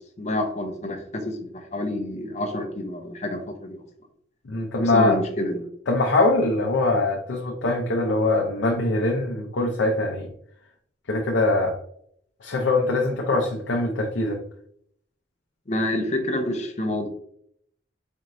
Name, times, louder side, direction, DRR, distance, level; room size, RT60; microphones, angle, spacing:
voice 1, 0.2-3.8 4.8-5.6 15.7-17.1, left 1 dB, 35° left, 5 dB, 0.6 m, -28 dB
voice 2, 4.5-5.2 5.9-10.3 11.1-11.8 12.4-14.4, left 2 dB, 80° left, 0 dB, 0.6 m, -22 dB
4.3 x 3.0 x 2.6 m, 0.67 s
head